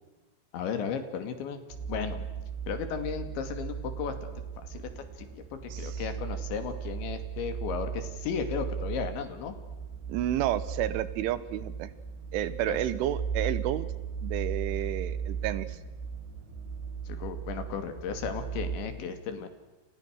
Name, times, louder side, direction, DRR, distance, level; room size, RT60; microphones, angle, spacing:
voice 1, 0.5-1.6 1.9-2.3 2.7-4.3 4.6-9.5 12.7-12.8 17.1-19.5, left 7 dB, 75° left, 8 dB, 4.6 m, -35 dB
sound 1, 1.7-18.8, right 7 dB, 70° right, 5.0 m, -37 dB
voice 2, 5.7-6.0 10.1-11.9 12.3-13.9 14.2-15.8, right 12 dB, 90° right, 15 dB, 3.7 m, -31 dB
30.0 x 29.0 x 6.5 m, 1.1 s
omnidirectional pair, 5.4 m